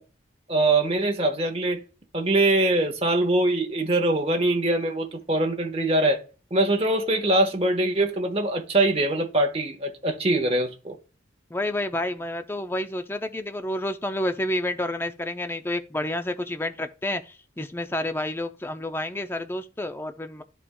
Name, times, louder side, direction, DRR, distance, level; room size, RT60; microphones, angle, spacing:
voice 1, 0.5-1.8 2.1-6.2 6.5-11.0, right 2 dB, 30° right, 1.1 m, -23 dB
voice 2, 11.5-20.4, left 1 dB, 10° left, 0.4 m, -29 dB
12.5 x 4.2 x 2.2 m
head